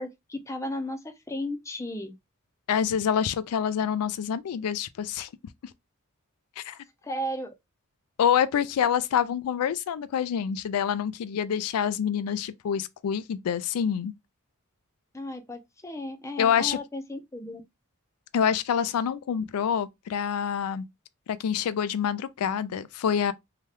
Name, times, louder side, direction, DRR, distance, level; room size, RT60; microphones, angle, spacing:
voice 1, 0.0-2.1 7.0-7.5 15.1-17.6, left 1 dB, 15° left, 0.5 m, -35 dB
voice 2, 2.7-5.3 6.6-6.8 8.2-14.1 16.4-16.8 18.3-20.8 21.3-23.3, left 8 dB, 90° left, 0.3 m, -26 dB
2.8 x 2.2 x 3.2 m
head